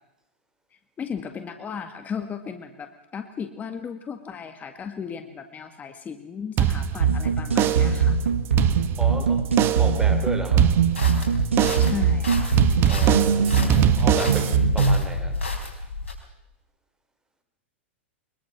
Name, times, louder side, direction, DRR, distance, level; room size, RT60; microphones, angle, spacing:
voice 1, 0.7-8.2 11.8-12.6, left 6 dB, 25° left, 7 dB, 2.0 m, -35 dB
sound 1, 6.6-7.2 7.6-8.1 8.4-9.2 9.6-10.0 10.6-11.2 11.6-12.0 12.6-14.6, right 10 dB, 35° right, 1.4 m, -23 dB
sound 2, 7.0-15.0, right 6 dB, 80° right, 1.8 m, -22 dB
voice 2, 9.0-9.5 9.8-10.7 12.9-15.4, right 1 dB, 10° right, 6 dB, 4.4 m, -34 dB
sound 3, 10.9-16.1, left 3 dB, 85° left, 4.5 m, -30 dB
23.0 x 22.0 x 6.0 m, 0.87 s
hypercardioid pair, 105°, 7 cm